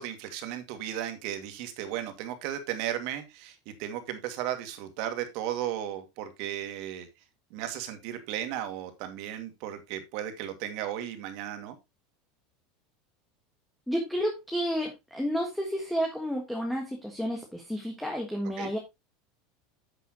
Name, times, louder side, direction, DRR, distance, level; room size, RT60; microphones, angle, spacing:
voice 1, 0.0-7.1 7.5-11.8 18.6-18.7, right 11 dB, 50° right, 8 dB, 2.2 m, -35 dB
voice 2, 13.9-18.8, equal, ahead, 1 dB, 1.6 m, -31 dB
10.5 x 7.7 x 3.0 m, 0.21 s
supercardioid pair, 165°, 0 cm